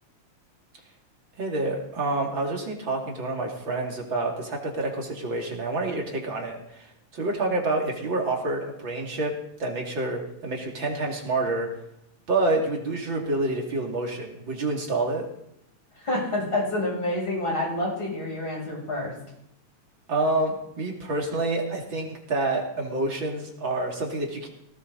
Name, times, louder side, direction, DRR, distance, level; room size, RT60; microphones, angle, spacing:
voice 1, 1.4-6.9 7.1-9.3 9.6-11.7 12.3-15.3 20.1-24.5, right 2 dB, 40° right, 0 dB, 3.4 m, -28 dB
voice 2, 16.0-19.1, left 1 dB, 40° left, -3 dB, 8.8 m, -28 dB
18.5 x 18.0 x 4.1 m, 0.77 s
omnidirectional pair, 3.3 m